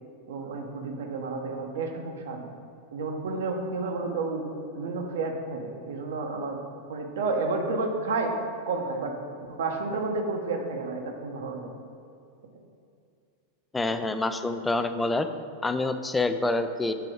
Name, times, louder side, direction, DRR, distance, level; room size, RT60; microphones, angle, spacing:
voice 1, 0.3-2.4 2.9-4.4 4.7-6.6 6.9-8.3 8.7-9.1 9.5-11.7, right 3 dB, 60° right, 3 dB, 0.8 m, -31 dB
voice 2, 13.7-15.3 15.6-16.9, left 2 dB, 10° left, 9 dB, 0.3 m, -27 dB
6.9 x 3.7 x 4.8 m, 2.4 s
figure-of-eight pair, 90°, 0 cm